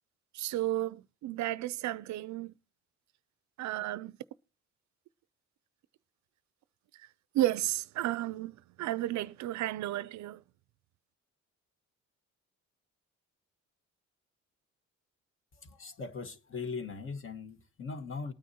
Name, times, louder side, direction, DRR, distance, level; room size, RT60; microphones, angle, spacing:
voice 1, 0.3-2.5 3.6-4.2 6.9-7.1 7.3-10.4, right 15 dB, 70° right, 0.5 m, -33 dB
voice 2, 15.5-18.3, left 4 dB, 45° left, 1.4 m, -40 dB
19.5 x 9.2 x 2.8 m
cardioid pair, 90°, 30 cm